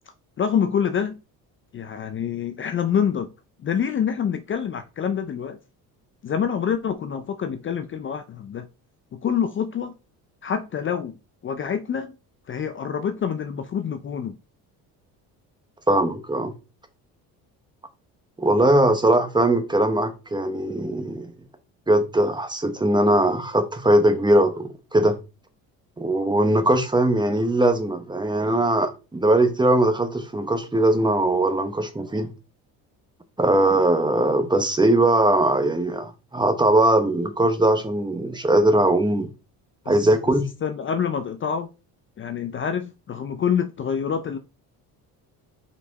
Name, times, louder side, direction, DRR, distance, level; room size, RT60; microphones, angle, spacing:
voice 1, 0.4-1.2 1.7-3.3 3.6-5.6 6.2-8.7 9.1-9.9 10.4-11.2 11.4-12.1 12.5-14.4 39.9-40.0 40.6-41.7 42.2-44.4, left 7 dB, 35° left, 0.5 m, -26 dB
voice 2, 15.9-16.5 18.4-21.3 21.9-25.2 26.0-32.3 33.4-39.3 39.9-40.5, right 1 dB, 10° right, 1.0 m, -20 dB
5.5 x 4.4 x 4.1 m
cardioid pair, 110°, 37 cm